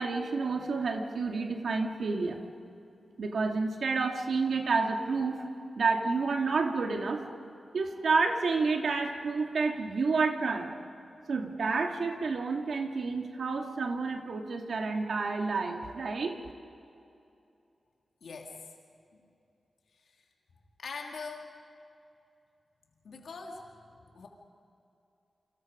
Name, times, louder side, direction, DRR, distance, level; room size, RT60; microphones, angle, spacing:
voice 1, 0.0-2.5 3.2-5.4 5.8-7.3 7.7-10.9 11.3-16.4, right 4 dB, 80° right, 3 dB, 2.3 m, -29 dB
voice 2, 18.2-18.6 19.1-19.3 19.9-20.2 20.8-21.5 23.0-24.3, left 4 dB, 85° left, 0 dB, 2.8 m, -43 dB
29.0 x 25.5 x 5.2 m, 2.7 s
wide cardioid pair, 90°, 0 cm